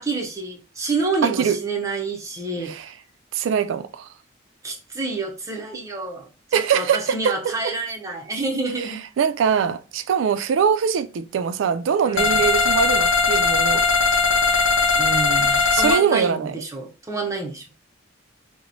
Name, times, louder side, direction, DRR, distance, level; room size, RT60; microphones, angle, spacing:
voice 1, 0.0-2.7 4.6-9.0 12.0-12.4 14.9-17.7, right 3 dB, 15° right, 0.6 m, -28 dB
voice 2, 1.2-1.6 2.7-2.9 3.3-4.1 6.5-7.7 9.2-13.9 15.7-16.5, right 7 dB, 80° right, 0.3 m, -22 dB
sound 1, 12.2-16.0, left 4 dB, 70° left, 0.6 m, -19 dB
3.0 x 2.1 x 3.9 m
head